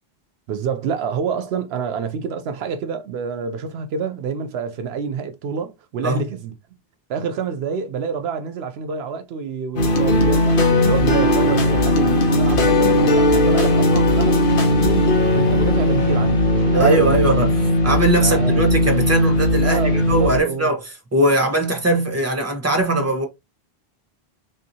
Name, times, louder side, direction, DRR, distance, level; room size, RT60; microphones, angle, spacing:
voice 1, 0.5-6.5 7.1-15.1 15.3-17.4 18.2-18.7 19.6-20.7, right 6 dB, 80° right, 0.8 m, -27 dB
sound 1, 9.8-20.4, left 1 dB, 60° left, 1.0 m, -17 dB
voice 2, 16.7-17.5 17.8-20.8 21.1-23.3, right 2 dB, 15° right, 0.9 m, -20 dB
3.9 x 2.7 x 2.7 m
omnidirectional pair, 1.0 m